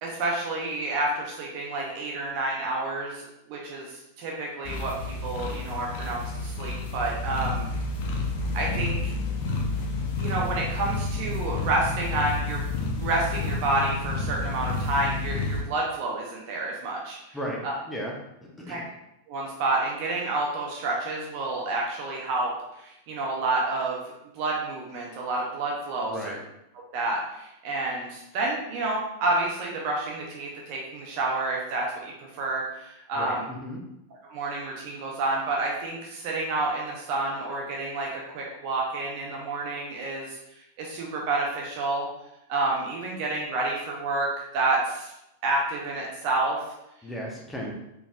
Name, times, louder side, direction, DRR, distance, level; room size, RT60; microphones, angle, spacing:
voice 1, 0.0-7.7 8.5-9.1 10.2-12.6 12.9-17.4 17.6-17.7 18.7-18.8 19.3-24.0 24.3-26.4 26.9-33.5 34.3-40.4 40.8-42.1 42.5-44.3 44.5-45.1 45.4-46.6, right 2 dB, 45° right, -2 dB, 0.7 m, -29 dB
sound 1, 4.7-15.6, left 3 dB, 50° left, 0.6 m, -30 dB
voice 2, 17.3-18.1 18.7-18.8 26.1-26.3 33.2-33.8 47.0-47.7, equal, 10° left, -2 dB, 0.7 m, -35 dB
4.0 x 3.4 x 2.3 m, 0.86 s
figure-of-eight pair, 90°, 0 cm